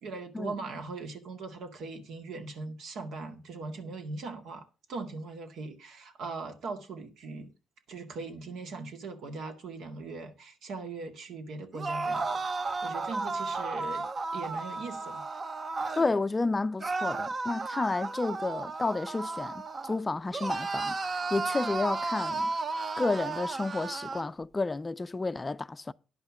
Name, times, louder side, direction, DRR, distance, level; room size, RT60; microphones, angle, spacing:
voice 1, 0.0-7.5 7.9-12.4 12.8-14.1 14.3-15.2, right 3 dB, 75° right, 1.9 m, -40 dB
sound 1, 11.7-16.1 16.8-20.0 20.3-24.3, right 3 dB, 40° right, 0.8 m, -33 dB
voice 2, 16.0-22.5 23.0-25.9, left 3 dB, 25° left, 0.4 m, -31 dB
10.5 x 5.6 x 7.2 m
cardioid pair, 90°, 0 cm